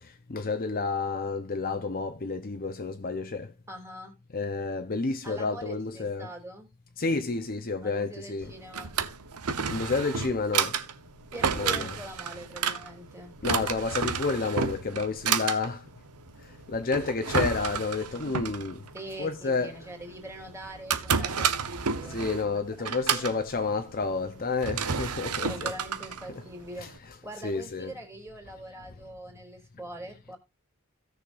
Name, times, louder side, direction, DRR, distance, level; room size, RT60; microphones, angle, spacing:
voice 1, 0.0-3.5 4.3-6.3 7.0-8.5 9.7-10.8 11.6-12.0 13.4-15.9 16.7-18.8 19.2-19.8 22.1-25.7 26.3-26.4 26.8-28.0, left 4 dB, 40° left, 0.8 m, -30 dB
voice 2, 3.7-4.1 5.2-6.7 7.8-8.9 11.3-13.3 18.9-22.6 23.1-23.3 25.4-26.9 27.2-30.4, right 1 dB, 10° right, 2.9 m, -43 dB
Drawer open or close, 8.4-27.0, right 6 dB, 85° right, 1.0 m, -31 dB
17.0 x 6.6 x 2.6 m
head